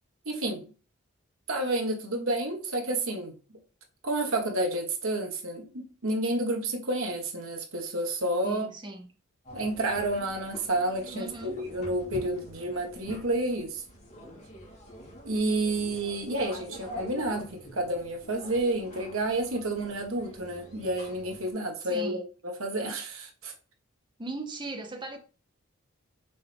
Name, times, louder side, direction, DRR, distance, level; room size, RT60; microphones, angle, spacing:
voice 1, 0.2-0.6 1.5-3.3 4.0-8.7 9.5-13.8 15.2-23.5, right 1 dB, 75° right, 1.6 m, -30 dB
voice 2, 8.4-9.1 11.1-11.6 21.9-22.2 24.2-25.2, right 2 dB, 20° right, 0.9 m, -38 dB
sound 1, 9.4-21.5, equal, 35° left, 2.6 m, -45 dB
6.2 x 4.5 x 3.5 m
head